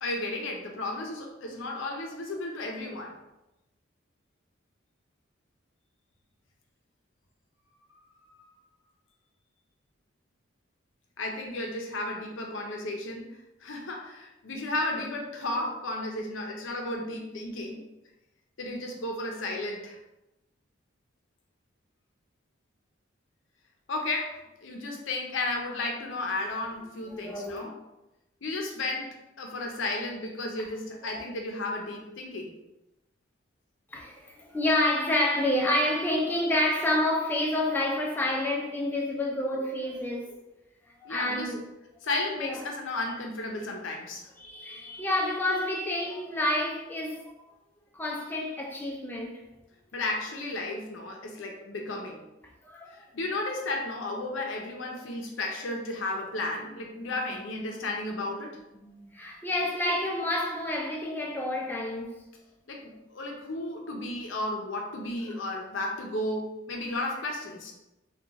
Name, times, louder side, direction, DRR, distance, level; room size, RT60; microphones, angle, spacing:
voice 1, 0.0-3.2 8.3-8.5 11.2-17.8 18.6-20.0 23.9-27.7 28.4-32.5 41.0-41.5 42.0-44.3 49.9-52.3 53.1-58.6 62.7-67.7, left 2 dB, 75° left, 0.6 m, -33 dB
voice 2, 27.0-27.6 31.2-31.3 33.9-40.4 41.0-41.6 42.3-42.6 44.4-47.4 47.9-49.4 52.6-53.0 57.2-57.3 58.8-62.2 65.3-65.6, left 1 dB, 10° left, 0.4 m, -29 dB
2.4 x 2.3 x 3.9 m
head